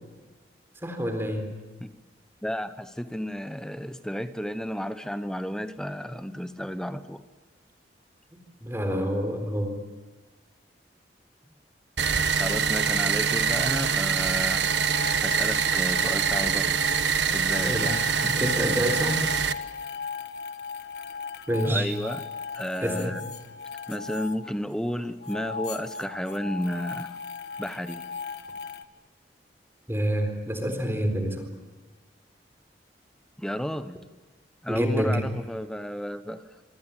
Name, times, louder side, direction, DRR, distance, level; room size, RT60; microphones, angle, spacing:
voice 1, 0.8-1.5 8.6-9.8 17.6-17.9 18.3-19.3 21.5-21.9 22.8-23.1 29.9-31.5 34.7-35.2, equal, 15° right, 6 dB, 4.1 m, -27 dB
voice 2, 2.4-7.2 12.3-14.7 15.2-16.9 17.3-18.3 21.6-22.2 22.5-23.2 23.9-27.2 27.6-28.0 33.4-34.0 34.6-36.4, equal, 5° left, 11 dB, 0.9 m, -32 dB
sound 1, 12.0-19.5, right 6 dB, 80° right, 1.3 m, -25 dB
sound 2, 12.6-13.0 13.3-14.2 14.6-24.9 25.2-28.8, left 5 dB, 65° left, 1.6 m, -38 dB
26.0 x 24.0 x 9.0 m, 1.2 s
head